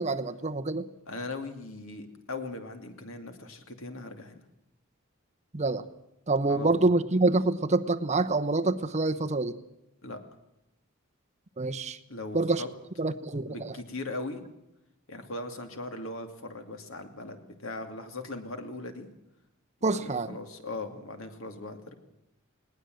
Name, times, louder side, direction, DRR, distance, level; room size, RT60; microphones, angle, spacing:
voice 1, 0.0-0.9 5.5-5.8 6.3-9.5 11.6-12.0 12.3-12.6 13.0-13.7 19.8-20.3, right 2 dB, 35° right, 9 dB, 0.9 m, -26 dB
voice 2, 1.1-4.4 6.5-6.9 10.0-10.2 12.1-12.7 13.5-14.4 15.1-19.1 19.9-21.9, left 2 dB, 70° left, 6 dB, 2.6 m, -39 dB
20.0 x 18.5 x 7.8 m, 0.87 s
head